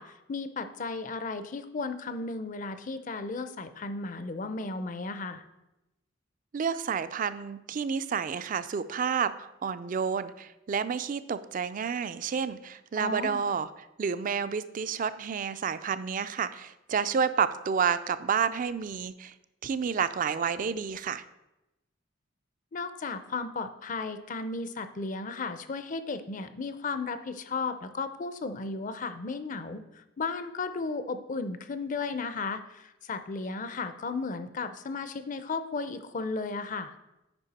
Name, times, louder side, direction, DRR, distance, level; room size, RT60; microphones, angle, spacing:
voice 1, 0.0-5.4 13.0-13.4 22.7-37.0, left 4 dB, 40° left, 11 dB, 0.5 m, -35 dB
voice 2, 6.5-13.7 14.0-19.3 19.6-21.2, right 6 dB, 45° right, 14 dB, 0.3 m, -30 dB
8.9 x 5.1 x 4.1 m, 0.94 s
head